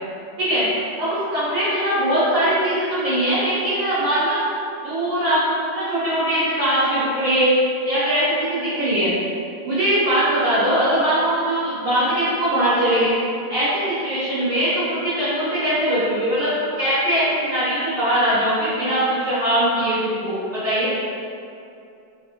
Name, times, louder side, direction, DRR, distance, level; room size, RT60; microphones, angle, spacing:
voice 1, 1.0-4.4 4.8-7.5 7.8-9.1 9.6-13.1 13.5-13.7 14.0-20.9, right 1 dB, 65° right, -12 dB, 1.4 m, -21 dB
4.4 x 4.0 x 2.5 m, 2.6 s
omnidirectional pair, 3.8 m